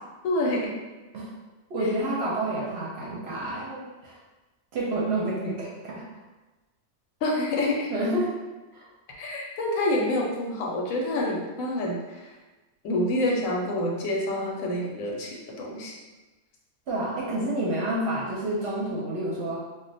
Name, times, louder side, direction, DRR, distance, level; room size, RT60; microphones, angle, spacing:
voice 1, 0.2-0.7 1.8-1.9 7.2-7.9 9.1-12.3 12.8-15.9, left 1 dB, 75° left, -2 dB, 1.0 m, -27 dB
voice 2, 1.7-4.2 4.7-6.0 7.9-8.4 8.7-8.9 16.9-19.6, right 1 dB, 60° right, -5 dB, 0.7 m, -29 dB
2.4 x 2.2 x 3.9 m, 1.2 s
omnidirectional pair, 1.5 m